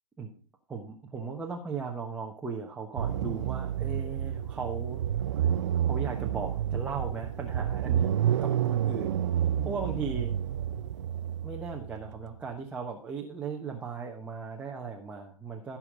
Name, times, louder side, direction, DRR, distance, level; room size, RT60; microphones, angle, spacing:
voice 1, 0.7-5.0 5.4-5.5 5.9-10.3 11.4-15.8, right 5 dB, 5° right, -1 dB, 1.2 m, -37 dB
sound 1, 3.0-12.4, right 10 dB, 45° right, 0.7 m, -30 dB
15.5 x 6.0 x 5.0 m, 0.38 s
figure-of-eight pair, 130°, 20 cm